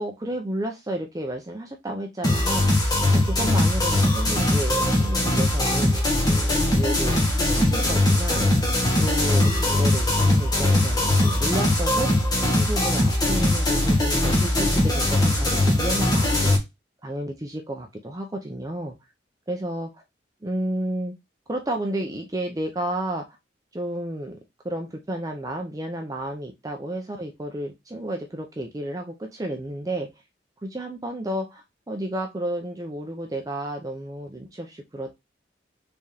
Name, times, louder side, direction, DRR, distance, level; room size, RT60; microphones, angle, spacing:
voice 1, 0.0-2.7 3.1-6.0 6.3-7.2 7.5-8.4 9.0-16.5 17.0-18.9 19.5-19.9 20.4-21.1 21.5-23.2 23.7-24.4 24.6-30.1 30.6-35.2, right 1 dB, 20° right, 3 dB, 0.5 m, -31 dB
sound 1, 2.2-16.6, left 1 dB, 20° left, 1.0 m, -21 dB
3.5 x 3.4 x 2.7 m, 0.21 s
head